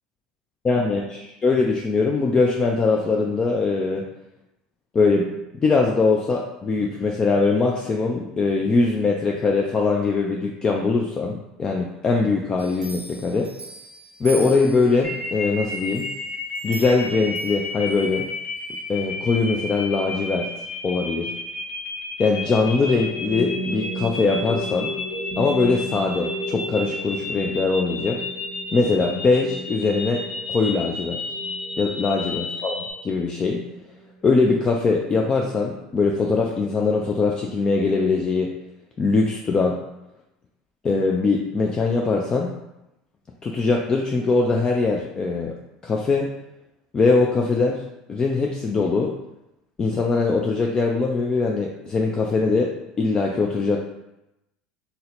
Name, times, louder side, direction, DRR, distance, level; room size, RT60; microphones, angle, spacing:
voice 1, 0.6-4.0 4.9-13.5 14.2-16.1 16.6-18.3 18.9-20.5 20.8-21.3 22.2-24.9 25.4-28.2 28.7-30.2 30.5-31.2 31.8-33.6 34.2-38.5 39.0-39.8 40.8-42.5 43.4-45.5 45.8-46.3 46.9-47.8 48.1-49.1 49.8-52.7 53.0-53.8, left 4 dB, 30° left, 0 dB, 0.4 m, -22 dB
sound 1, 12.6-15.2 15.7-18.1 18.6-18.7, right 2 dB, 35° right, 0.7 m, -40 dB
sound 2, 15.0-32.9, left 3 dB, 70° left, 0.8 m, -32 dB
sound 3, 22.5-35.9, right 1 dB, ahead, 1.1 m, -35 dB
2.7 x 2.1 x 4.0 m, 0.89 s
supercardioid pair, 100°, 3 cm